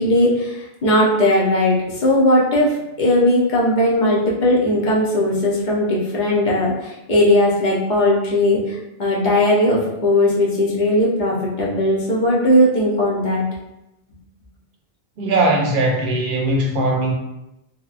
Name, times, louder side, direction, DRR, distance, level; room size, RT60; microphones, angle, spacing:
voice 1, 0.0-13.4, left 1 dB, 50° left, -5 dB, 0.8 m, -18 dB
voice 2, 15.2-17.1, right 2 dB, 60° right, 0 dB, 0.7 m, -19 dB
2.8 x 2.2 x 2.4 m, 0.90 s
omnidirectional pair, 1.0 m